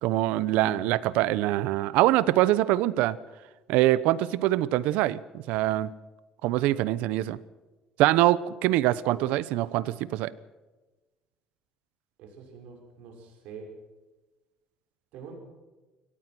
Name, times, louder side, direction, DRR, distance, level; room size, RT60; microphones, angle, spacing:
voice 1, 0.0-3.2 3.7-5.9 6.4-7.4 8.0-10.3, right 15 dB, 85° right, 18 dB, 0.9 m, -24 dB
voice 2, 12.2-13.7 15.1-15.3, right 6 dB, 65° right, 2 dB, 6.3 m, -45 dB
24.0 x 17.5 x 6.2 m, 1.2 s
cardioid pair, 175°, 2 cm